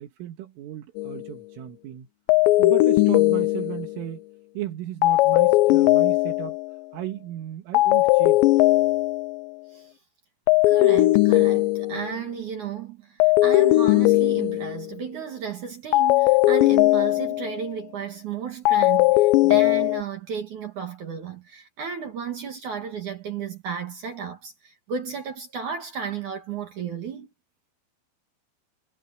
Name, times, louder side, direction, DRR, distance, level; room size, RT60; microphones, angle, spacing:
voice 1, 0.0-2.1 2.6-4.3 4.5-6.6 6.9-8.5, right 13 dB, 80° right, 4.5 m, -35 dB
sound 1, 1.0-1.3 2.3-4.0 5.0-6.7 7.7-9.4 10.5-12.2 13.2-14.9 15.9-17.6 18.7-20.0, left 18 dB, 90° left, 2.6 m, -19 dB
voice 2, 10.7-27.3, right 7 dB, 55° right, 2.4 m, -34 dB
omnidirectional pair, 5.7 m